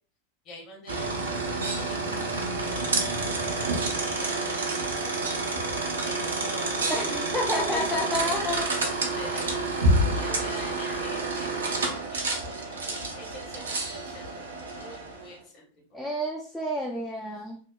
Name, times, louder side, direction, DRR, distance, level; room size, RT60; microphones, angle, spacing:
voice 1, 0.4-3.4 4.1-5.1 6.0-6.9 7.7-8.5 9.1-9.6 10.1-11.7 12.1-14.3 14.7-16.0 17.3-17.5, left 1 dB, 35° left, -1 dB, 1.1 m, -45 dB
sound 1, 0.9-15.3, right 2 dB, 70° right, 0.5 m, -29 dB
voice 2, 6.9-8.7 15.9-17.6, left 1 dB, 5° left, -3 dB, 0.4 m, -30 dB
2.8 x 2.0 x 2.2 m, 0.43 s
figure-of-eight pair, 90°, 0 cm